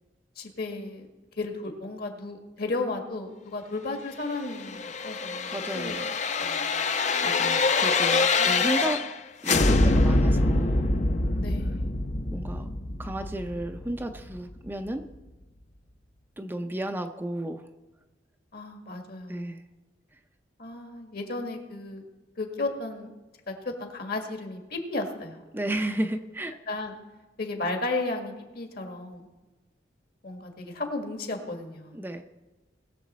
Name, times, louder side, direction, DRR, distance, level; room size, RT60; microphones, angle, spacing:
voice 1, 0.3-1.1 1.4-6.0 6.4-6.8 8.4-8.7 11.4-11.9 18.5-19.6 20.6-22.0 22.4-23.1 23.5-25.4 26.7-26.9 27.4-29.3 30.2-32.0, left 2 dB, 55° left, 4 dB, 1.7 m, -34 dB
sound 1, 4.4-9.2 9.4-14.3 14.7-14.8, left 3 dB, 40° left, 0.6 m, -25 dB
voice 2, 5.5-6.0 7.2-9.0 9.4-10.9 12.3-12.7 13.0-15.1 16.4-17.7 19.3-19.6 25.5-26.5 31.9-32.2, right 1 dB, 10° right, 6 dB, 0.5 m, -33 dB
20.0 x 7.0 x 4.2 m, 1.1 s
head